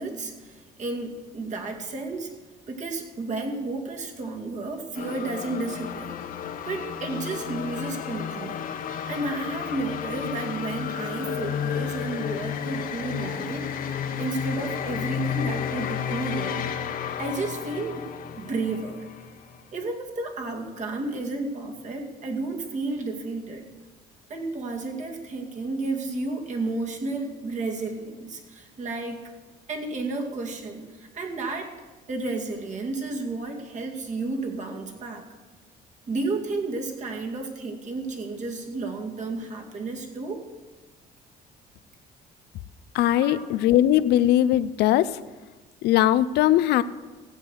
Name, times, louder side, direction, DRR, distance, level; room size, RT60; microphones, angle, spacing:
voice 1, 0.0-2.3 2.7-6.2 6.7-8.6 9.1-16.7 17.2-18.1 18.4-19.1 19.7-23.7 24.3-29.2 29.7-31.7 32.1-35.2 36.1-40.5 43.2-43.6, right 3 dB, 45° right, 2 dB, 2.4 m, -32 dB
sound 1, 5.0-19.9, left 8 dB, 55° left, 1.2 m, -32 dB
voice 2, 42.9-45.2 45.8-46.8, left 13 dB, 75° left, 15 dB, 0.5 m, -20 dB
16.0 x 8.4 x 6.4 m, 1.3 s
cardioid pair, 110°, 17 cm